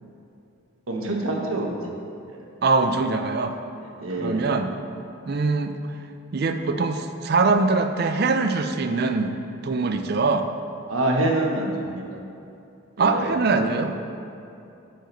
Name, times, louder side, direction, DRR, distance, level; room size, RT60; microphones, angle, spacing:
voice 1, 0.9-1.8 2.3-2.4 4.0-4.5 10.9-12.0 13.0-13.7, right 2 dB, 90° right, 0 dB, 1.1 m, -26 dB
voice 2, 2.6-3.6 4.2-4.7 5.3-5.8 6.3-9.3 9.6-10.5 13.0-14.1, right 3 dB, 50° right, 7 dB, 0.4 m, -22 dB
8.8 x 5.0 x 3.9 m, 2.7 s
head